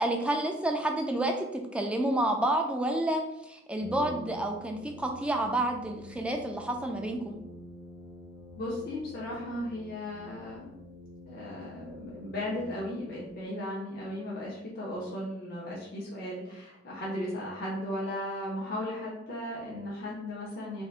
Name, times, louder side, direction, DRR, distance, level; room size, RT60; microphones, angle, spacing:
voice 1, 0.0-7.4, right 1 dB, 5° right, 2 dB, 0.3 m, -29 dB
Brass instrument, 3.8-13.3, left 1 dB, 65° right, 0.7 m, -48 dB
voice 2, 8.6-10.8 11.2-20.9, left 1 dB, 55° left, -6 dB, 0.7 m, -36 dB
3.4 x 2.7 x 2.4 m, 0.85 s
head